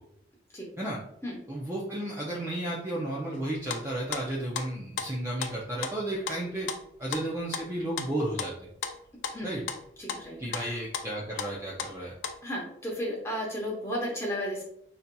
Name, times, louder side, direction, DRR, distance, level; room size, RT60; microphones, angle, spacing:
voice 1, 1.5-6.7 7.0-8.5 9.4-9.6 10.4-12.1, right 1 dB, 15° right, -5 dB, 0.4 m, -33 dB
sound 1, 3.3-12.4, left 6 dB, 75° left, 0.4 m, -36 dB
voice 2, 9.3-9.6 10.0-10.8 12.4-14.6, equal, 15° left, -3 dB, 0.8 m, -34 dB
3.9 x 2.7 x 2.2 m, 0.71 s
head